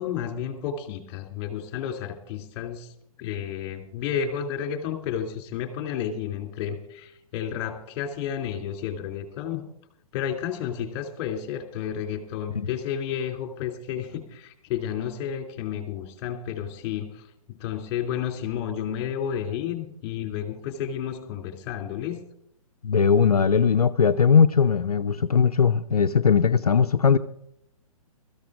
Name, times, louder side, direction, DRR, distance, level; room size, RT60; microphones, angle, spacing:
voice 1, 0.0-2.9 3.2-9.6 10.1-17.2 17.5-22.2, left 9 dB, 30° left, 2.6 m, -31 dB
voice 2, 22.8-27.2, left 6 dB, 80° left, 0.6 m, -19 dB
22.0 x 14.0 x 2.5 m
figure-of-eight pair, 120°, 19 cm